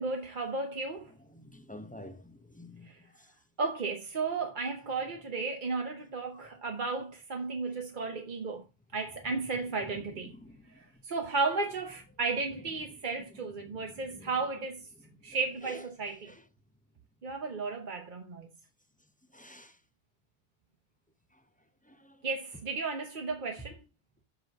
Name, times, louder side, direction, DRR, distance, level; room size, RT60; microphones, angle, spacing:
voice 1, 0.0-1.1 2.8-3.0 3.6-8.6 8.9-10.3 10.7-14.9 15.2-16.3 17.2-18.5 22.2-23.8, right 4 dB, 45° right, 1.0 m, -34 dB
voice 2, 1.3-3.3 6.3-6.4 9.8-11.0 13.3-14.5 15.0-15.4 15.6-15.8 16.2-16.4 19.3-19.8 21.3-21.4 21.8-22.3 23.6-23.7, left 1 dB, 10° left, 0.5 m, -50 dB
6.2 x 5.3 x 5.2 m
omnidirectional pair, 1.2 m